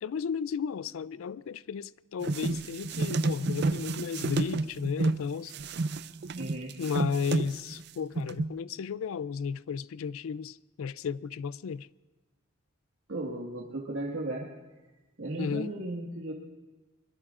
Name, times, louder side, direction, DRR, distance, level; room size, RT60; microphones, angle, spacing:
voice 1, 0.0-5.5 6.8-11.9 15.4-15.7, left 6 dB, 85° left, 0.4 m, -34 dB
sound 1, 2.2-5.2 5.5-7.8 8.2-8.5, right 3 dB, 55° right, 0.5 m, -30 dB
voice 2, 6.3-6.7 13.1-14.5 15.2-16.3, right 2 dB, 90° right, 1.8 m, -35 dB
25.5 x 20.5 x 2.5 m
head